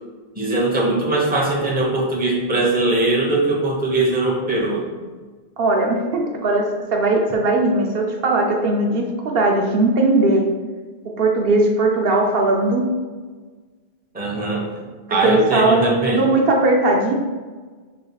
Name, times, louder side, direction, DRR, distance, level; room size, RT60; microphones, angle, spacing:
voice 1, 0.4-4.8 14.1-16.2, right 2 dB, 10° right, -3 dB, 0.7 m, -21 dB
voice 2, 5.6-10.5 11.2-12.9 15.2-17.1, right 2 dB, 70° right, 1 dB, 0.8 m, -18 dB
5.5 x 3.4 x 2.3 m, 1.4 s
omnidirectional pair, 1.0 m